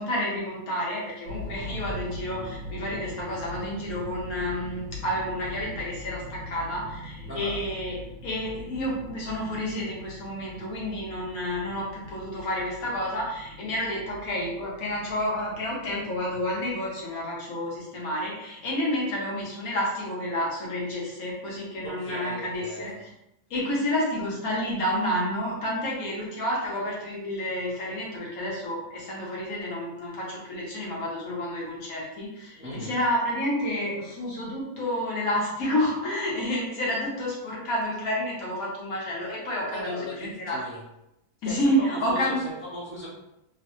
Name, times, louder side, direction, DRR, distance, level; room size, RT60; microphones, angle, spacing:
voice 1, 0.0-8.0 8.2-22.9 23.5-40.6 41.4-42.4, left 1 dB, 90° left, -4 dB, 1.4 m, -30 dB
sound 1, 1.3-17.1, left 1 dB, 65° right, 0.9 m, -41 dB
voice 2, 21.8-22.9 32.5-33.0 39.7-40.8 41.4-43.1, equal, 20° right, -6 dB, 0.4 m, -38 dB
3.1 x 2.1 x 3.0 m, 0.87 s
omnidirectional pair, 1.5 m